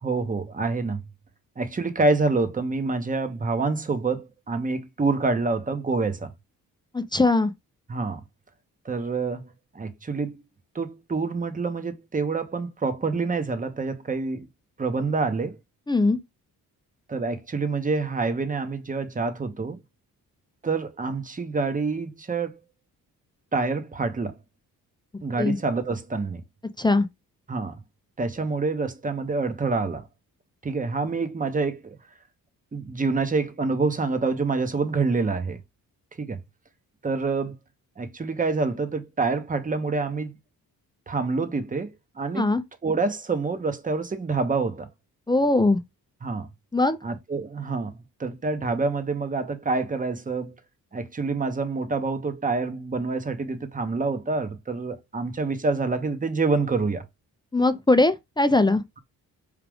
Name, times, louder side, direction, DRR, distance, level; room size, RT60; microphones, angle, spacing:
voice 1, 0.0-1.0 1.6-6.3 7.9-8.2 8.8-9.4 9.7-10.4 10.7-14.5 14.8-15.6 17.1-19.8 20.6-22.6 23.5-24.3 25.2-26.4 27.5-27.8 28.2-30.1 30.6-32.0 32.7-35.6 36.2-36.4 37.0-37.5 38.0-40.3 41.1-42.5 42.8-44.9 46.2-46.5 47.0-47.9 48.2-50.5 50.9-57.0, right 3 dB, 20° right, 0.8 m, -27 dB
voice 2, 6.9-7.5 15.9-16.2 25.4-25.6 26.8-27.1 42.4-42.6 45.3-45.8 46.7-47.0 57.5-58.8, left 2 dB, 10° left, 0.4 m, -20 dB
4.9 x 2.4 x 3.4 m
cardioid pair, 70°, 37 cm